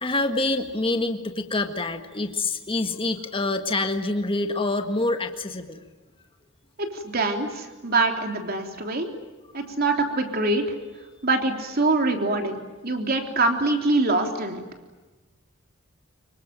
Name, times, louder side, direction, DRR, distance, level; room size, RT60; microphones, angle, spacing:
voice 1, 0.0-5.8, left 2 dB, 25° left, 6 dB, 1.7 m, -26 dB
voice 2, 6.8-9.1 9.5-10.7 11.2-14.6, right 2 dB, 50° right, 4 dB, 3.5 m, -24 dB
26.0 x 23.5 x 8.9 m, 1.2 s
head